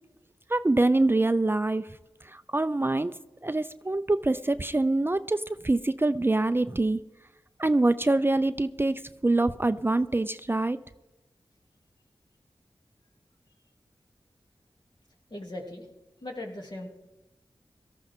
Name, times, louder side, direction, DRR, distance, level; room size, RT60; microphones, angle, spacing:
voice 1, 0.5-1.9 2.3-3.1 3.4-7.0 7.6-10.8, right 2 dB, 25° right, 13 dB, 0.4 m, -25 dB
voice 2, 15.3-15.9 16.2-16.9, left 1 dB, 50° left, 0 dB, 2.7 m, -38 dB
18.0 x 13.5 x 3.7 m, 1.0 s
cardioid pair, 45°, 9 cm